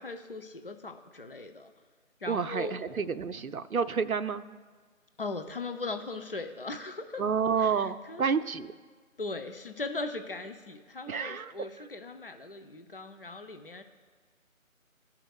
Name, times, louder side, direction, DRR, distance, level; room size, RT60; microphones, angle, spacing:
voice 1, 0.0-1.7 2.2-2.8 5.2-7.2 7.6-8.2 9.2-13.8, left 3 dB, 40° left, 7 dB, 0.6 m, -39 dB
voice 2, 2.3-4.4 7.2-8.7 11.1-11.5, right 6 dB, 80° right, 12 dB, 0.7 m, -29 dB
16.5 x 5.7 x 2.3 m, 1.5 s
figure-of-eight pair, 165°, 42 cm